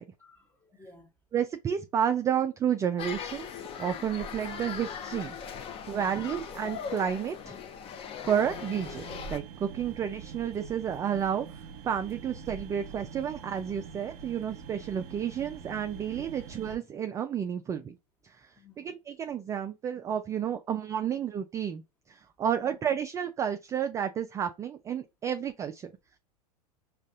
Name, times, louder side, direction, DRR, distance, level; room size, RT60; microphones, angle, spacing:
voice 1, 0.2-1.1 5.9-6.2 16.2-16.3 18.6-18.9 22.6-22.8, left 3 dB, 10° left, 1.0 m, -54 dB
voice 2, 1.3-5.4 5.9-7.6 8.2-11.6 11.8-18.0 18.2-21.8 22.1-25.9, right 8 dB, 15° right, 0.3 m, -31 dB
sound 1, 3.0-9.4, left 7 dB, 25° left, 0.6 m, -39 dB
sound 2, 8.4-16.8, right 6 dB, 45° right, 0.9 m, -45 dB
5.2 x 2.4 x 2.5 m
hypercardioid pair, 100°, 20 cm